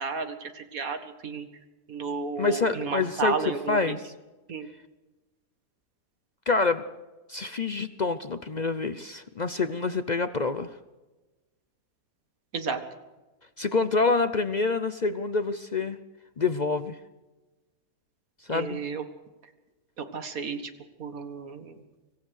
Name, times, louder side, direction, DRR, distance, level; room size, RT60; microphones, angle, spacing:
voice 1, 0.0-1.5 1.9-4.0 4.5-4.7 12.5-12.8 18.5-19.0 20.0-20.7 21.0-21.8, right 5 dB, 65° right, 8 dB, 2.1 m, -32 dB
voice 2, 2.4-3.4 3.7-4.0 6.5-6.8 7.3-10.8 13.6-16.0 16.4-17.0 18.5-18.8, left 3 dB, 45° left, 11 dB, 0.5 m, -26 dB
25.5 x 15.5 x 6.5 m, 1.1 s
omnidirectional pair, 1.6 m